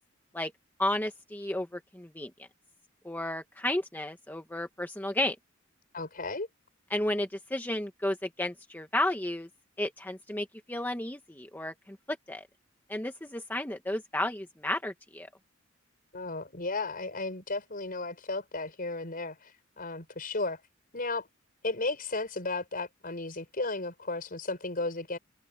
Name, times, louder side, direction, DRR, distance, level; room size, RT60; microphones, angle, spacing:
voice 1, 0.8-2.3 3.0-5.4 6.9-9.5 9.8-12.4 12.9-15.3, left 1 dB, 10° left, 1.0 m, -32 dB
voice 2, 5.9-6.5 16.1-20.6 20.9-21.3 21.6-25.2, left 3 dB, 45° left, 5.7 m, -34 dB
head